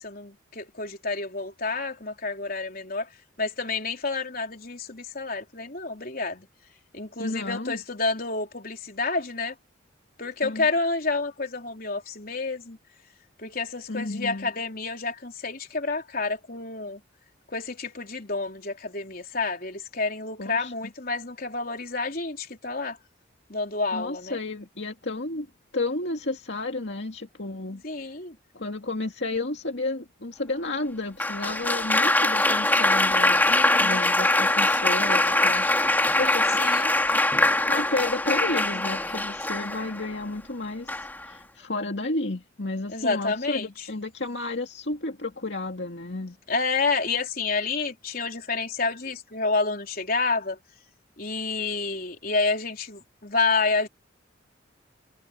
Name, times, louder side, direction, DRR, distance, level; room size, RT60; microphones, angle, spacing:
voice 1, 0.0-3.1 3.4-6.5 6.9-9.5 10.2-12.8 13.4-17.0 17.5-23.0 23.5-24.4 27.8-28.4 33.5-34.1 36.6-36.9 42.9-43.9 46.5-50.6 51.2-53.9, left 3 dB, 50° left, 4.1 m, -29 dB
voice 2, 7.2-7.8 10.4-10.7 13.9-14.5 20.4-20.7 23.9-25.5 25.7-27.8 28.5-33.5 33.8-36.6 37.1-37.2 37.7-46.4, left 2 dB, 65° left, 2.3 m, -32 dB
Applause, 31.2-40.1 40.9-41.3, left 2 dB, 10° left, 3.5 m, -23 dB
head